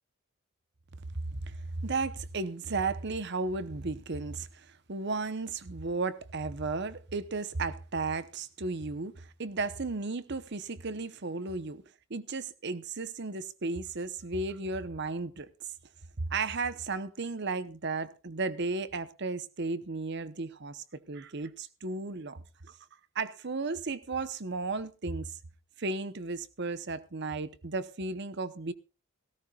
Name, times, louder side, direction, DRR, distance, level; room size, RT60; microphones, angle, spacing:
voice 1, 1.3-11.8 12.1-15.7 16.2-22.8 23.1-25.3 25.8-28.7, right 3 dB, 55° right, 0.9 m, -34 dB
17.5 x 16.5 x 2.4 m
head